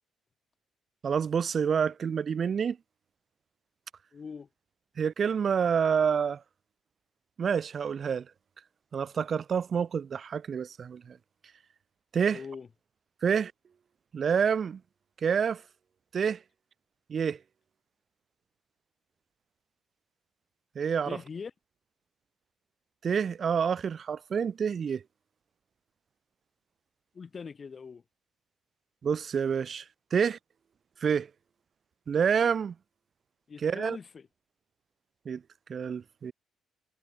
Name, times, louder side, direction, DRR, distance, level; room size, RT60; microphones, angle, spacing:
voice 1, 1.0-2.8 5.0-6.4 7.4-8.2 8.9-11.2 12.1-12.4 13.2-13.5 14.1-14.8 15.2-15.6 16.1-16.4 17.1-17.4 20.7-21.2 23.0-25.0 29.0-29.8 30.1-30.4 31.0-31.3 32.1-32.7 33.6-34.0 35.2-35.4 35.7-36.3, right 7 dB, 50° right, 1.2 m, -28 dB
voice 2, 4.1-4.5 12.3-12.7 21.1-21.5 27.1-28.0 33.5-34.3, left 5 dB, 40° left, 3.6 m, -42 dB
cardioid pair, 90°, 0 cm